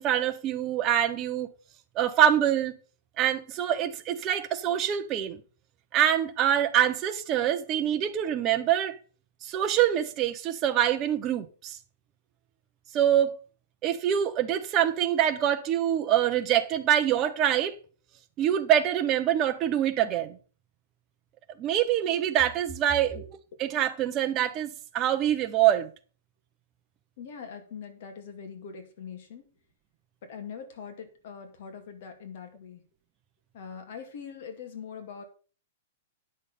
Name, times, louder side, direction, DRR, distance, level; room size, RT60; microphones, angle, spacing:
voice 1, 0.0-1.5 2.0-2.7 3.2-5.4 5.9-9.0 9.4-11.8 12.9-13.3 13.8-17.7 18.4-20.4 21.6-23.1 23.6-25.9, right 10 dB, 20° right, 0.9 m, -25 dB
voice 2, 27.2-29.5 30.2-32.8 33.5-35.2, left 6 dB, 50° left, 2.3 m, -42 dB
9.9 x 6.4 x 5.4 m
hypercardioid pair, 170°, 0 cm